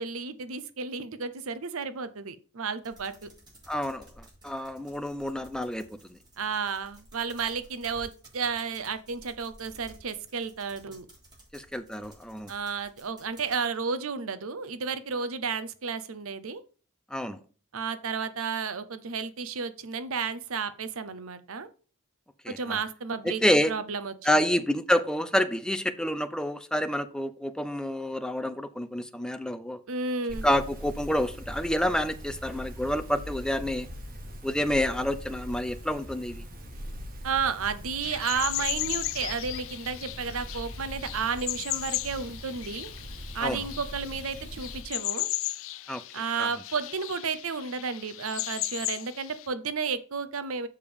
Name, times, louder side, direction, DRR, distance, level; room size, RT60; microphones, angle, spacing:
voice 1, 0.0-3.3 6.4-11.1 12.5-16.6 17.7-21.7 22.5-23.4 23.7-24.6 29.9-30.4 37.2-42.9 43.3-45.3 46.1-50.7, right 5 dB, 65° right, 0.7 m, -32 dB
sound 1, 2.8-13.6, right 1 dB, 20° right, 3.4 m, -54 dB
voice 2, 3.7-4.1 4.4-6.2 11.5-12.5 17.1-17.4 22.4-22.8 23.2-23.7 24.2-29.8 30.4-33.9 34.4-36.4 43.4-43.6 45.9-46.0 46.4-46.5, left 1 dB, 5° left, 0.5 m, -28 dB
sound 2, 30.3-44.8, equal, 40° right, 1.5 m, -42 dB
sound 3, 38.0-49.5, left 17 dB, 65° left, 0.4 m, -36 dB
6.7 x 5.1 x 5.2 m
head